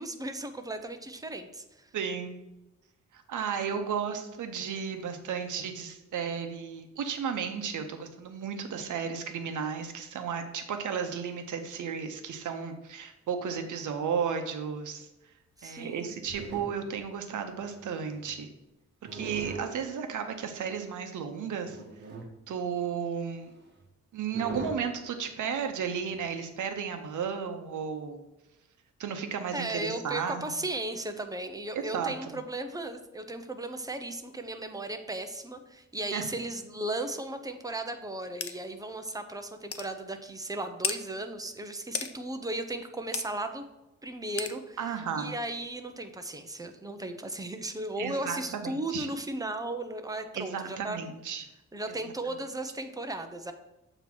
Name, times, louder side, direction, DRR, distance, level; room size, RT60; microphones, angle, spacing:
voice 1, 0.0-1.9 15.6-16.1 29.5-43.6 44.0-44.8 45.2-51.0 51.7-53.5, right 2 dB, 10° right, 7 dB, 0.6 m, -36 dB
voice 2, 1.9-2.4 3.1-15.1 15.6-18.5 19.1-21.8 22.5-23.5 24.1-28.3 29.0-30.6 31.9-32.4 36.1-36.3 44.8-45.3 48.0-49.1 50.3-51.4 51.9-52.0, right 7 dB, 90° right, 6 dB, 0.9 m, -34 dB
sound 1, 15.9-17.0 17.6-18.4 19.1-19.7 20.6-20.7 21.7-22.3 23.4-23.5 23.8-23.9 24.3-24.8 26.1-26.2, right 2 dB, 35° right, 1.1 m, -41 dB
sound 2, 38.4-38.5 39.1-39.2 39.7-39.9 40.8-41.0 41.9-42.1 43.1-43.3 44.4-44.5, left 7 dB, 50° left, 0.6 m, -32 dB
7.1 x 3.0 x 5.9 m, 0.98 s
wide cardioid pair, 110°, 29 cm